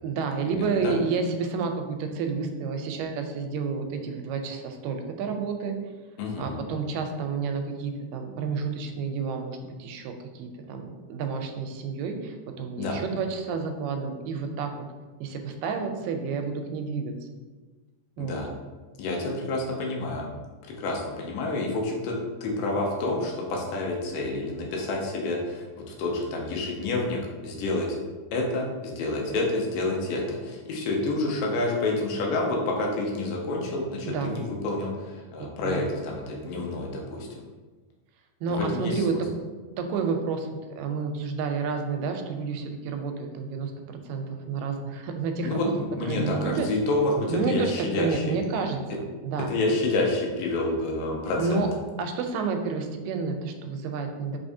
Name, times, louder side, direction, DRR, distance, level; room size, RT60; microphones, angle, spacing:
voice 1, 0.0-5.8 6.4-14.7 15.2-17.1 18.2-18.4 34.1-34.4 35.6-35.9 38.4-39.1 39.7-40.5 40.8-43.7 44.1-45.7 46.0-46.7 47.3-49.5 51.4-51.7 52.0-54.4, right 5 dB, 90° right, 5 dB, 2.2 m, -30 dB
voice 2, 0.6-1.0 6.2-6.6 12.8-13.0 18.2-18.5 19.0-20.3 20.8-28.0 28.3-37.3 38.5-39.2 45.4-45.7 46.0-48.4 49.5-51.6, left 2 dB, 85° left, -1 dB, 2.4 m, -28 dB
5.3 x 3.5 x 2.6 m, 1.3 s
omnidirectional pair, 3.8 m